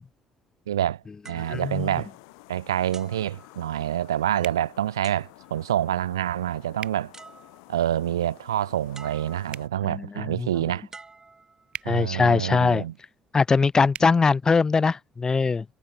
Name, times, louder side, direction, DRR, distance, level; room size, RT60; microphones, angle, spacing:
voice 1, 0.7-2.1 2.5-7.1 7.7-10.9 11.8-12.9, right 11 dB, 85° right, 0.5 m, -27 dB
sound 1, 1.2-2.4 2.9-4.1 5.0-5.7 6.8-6.9 7.1-8.0 8.9-9.7 10.9-12.0 12.7-13.0, right 3 dB, 25° right, 5.4 m, -49 dB
sound 2, 1.3-9.7, left 33 dB, 75° left, 1.6 m, -51 dB
voice 2, 1.5-1.9 9.8-10.5 11.9-12.8 13.3-15.6, left 4 dB, 30° left, 0.9 m, -22 dB
sound 3, 4.4-4.6 6.8-7.0 9.5-9.7 11.7-11.9 13.9-14.1, right 9 dB, 50° right, 1.4 m, -37 dB
hypercardioid pair, 50°, 2 cm